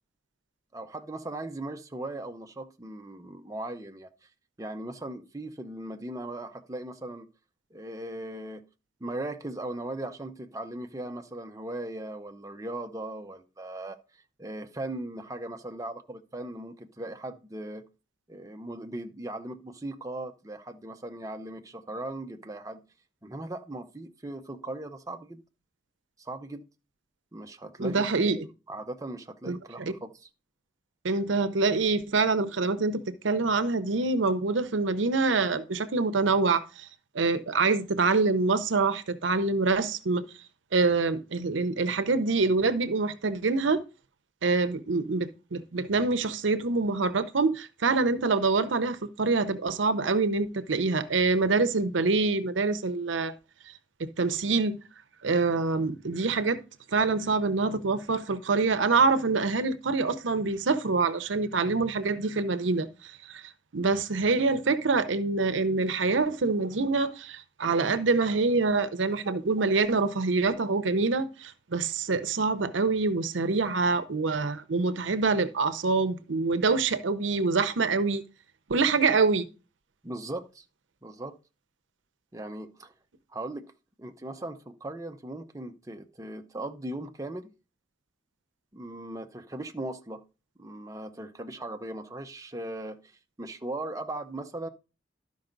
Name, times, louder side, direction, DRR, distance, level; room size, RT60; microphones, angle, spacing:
voice 1, 0.7-4.1 4.6-7.3 7.7-8.6 9.0-14.0 14.4-17.8 18.3-22.8 23.2-25.4 26.2-26.6 27.3-28.1 28.3-30.3 80.0-80.6 81.0-81.3 82.3-82.9 83.3-83.7 84.0-87.5 88.7-90.2 90.6-93.0 93.4-94.7, right 1 dB, 20° right, 0.6 m, -38 dB
voice 2, 27.8-28.5 29.5-29.6 31.0-36.9 37.1-40.2 40.7-43.8 44.4-53.3 54.0-54.8 55.2-56.6 56.9-63.4 63.7-78.2 78.7-79.5, right 3 dB, 80° right, 0.7 m, -25 dB
12.0 x 5.3 x 3.9 m
head